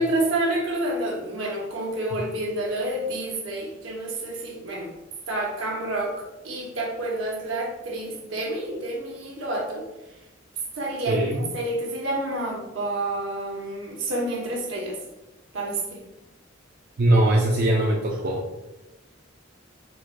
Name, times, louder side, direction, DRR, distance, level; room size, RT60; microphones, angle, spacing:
voice 1, 0.0-4.9 5.3-9.8 10.7-11.2 11.5-15.0 15.5-16.0, right 1 dB, 75° right, -1 dB, 0.8 m, -29 dB
voice 2, 11.1-11.5 17.0-18.6, right 1 dB, 50° right, -4 dB, 0.4 m, -21 dB
4.5 x 2.1 x 2.5 m, 0.97 s
head